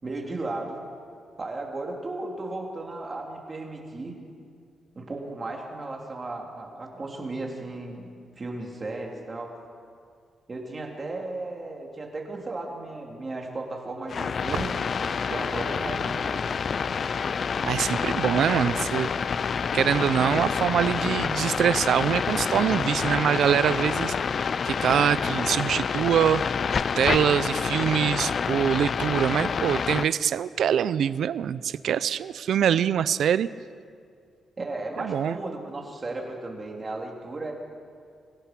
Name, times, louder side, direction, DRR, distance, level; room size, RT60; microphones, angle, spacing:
voice 1, 0.0-0.8 1.4-4.1 5.0-8.1 8.4-9.5 10.5-14.7 15.3-16.4 34.6-37.5, right 2 dB, 25° right, 0 dB, 3.5 m, -35 dB
sound 1, 14.1-30.1, left 6 dB, 45° left, 0.5 m, -28 dB
voice 2, 17.6-19.1 19.7-24.1 24.7-26.4 27.0-33.5 35.0-35.4, right 9 dB, 70° right, 16 dB, 0.6 m, -24 dB
26.5 x 16.5 x 6.2 m, 2.2 s
cardioid pair, 125°, 0 cm